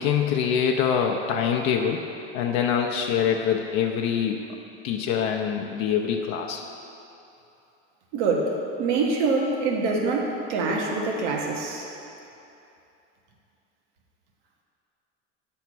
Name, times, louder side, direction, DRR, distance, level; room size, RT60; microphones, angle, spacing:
voice 1, 0.0-2.0 2.3-4.4 4.8-6.6, left 7 dB, 60° left, 2 dB, 0.6 m, -24 dB
voice 2, 8.1-11.9, right 3 dB, 80° right, 0 dB, 1.2 m, -25 dB
8.0 x 3.6 x 6.1 m, 2.8 s
supercardioid pair, 105°, 35 cm